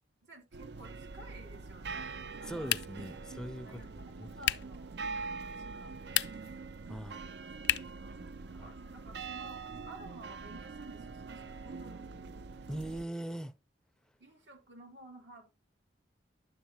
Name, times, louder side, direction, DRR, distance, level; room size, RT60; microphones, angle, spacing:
voice 1, 0.2-2.7 3.6-4.9 5.6-6.2 8.0-12.4 14.2-15.5, right 1 dB, 85° right, 3.0 m, -54 dB
sound 1, 0.5-13.1, right 4 dB, 65° right, 0.5 m, -44 dB
voice 2, 2.4-3.8 4.2-4.3 6.9-7.2 8.6-8.7 12.7-13.5, right 1 dB, 5° left, 0.5 m, -40 dB
sound 2, 2.6-3.1 4.4-4.8 6.0-6.6 7.6-8.0, left 12 dB, 65° left, 0.4 m, -32 dB
10.5 x 7.2 x 2.8 m
head